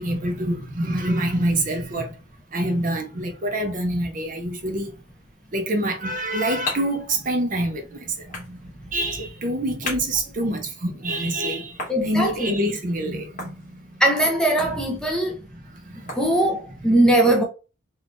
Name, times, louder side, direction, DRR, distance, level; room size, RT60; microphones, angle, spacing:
voice 1, 0.0-2.1 2.5-5.0 5.5-14.0 14.6-15.0 15.5-16.2, right 1 dB, 40° right, 0.6 m, -26 dB
golf ball hits stereo, 5.9-16.8, left 3 dB, 40° left, 1.2 m, -40 dB
voice 2, 11.9-12.5 14.0-15.4 16.1-17.4, right 1 dB, 5° left, 0.5 m, -20 dB
3.4 x 2.4 x 2.5 m
head